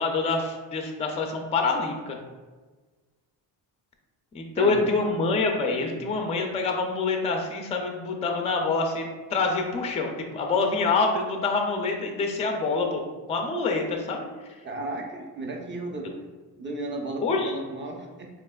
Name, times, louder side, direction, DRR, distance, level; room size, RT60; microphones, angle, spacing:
voice 1, 0.0-2.2 4.3-13.0 13.3-14.3 17.2-17.5, left 3 dB, 15° left, 2 dB, 0.3 m, -26 dB
voice 2, 4.6-5.1 14.6-16.1 16.6-18.3, right 2 dB, 30° right, 1 dB, 0.6 m, -34 dB
4.1 x 3.2 x 2.2 m, 1.3 s
cardioid pair, 125°, 41 cm